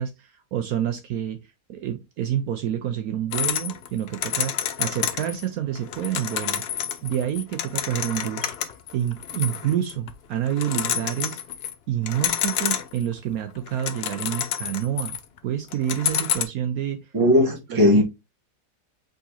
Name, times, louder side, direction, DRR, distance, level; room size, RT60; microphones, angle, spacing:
voice 1, 0.0-1.4 1.7-6.6 7.0-8.5 8.9-11.4 11.9-15.2 15.4-17.1 17.7-18.0, right 10 dB, 70° right, 1.0 m, -28 dB
sound 1, 3.3-5.4 5.7-10.1 10.5-11.7 12.1-13.1 13.5-15.4 15.7-16.4, left 9 dB, 85° left, 0.5 m, -29 dB
voice 2, 17.1-18.0, left 1 dB, 15° right, 1.0 m, -17 dB
4.7 x 3.9 x 2.7 m
omnidirectional pair, 1.7 m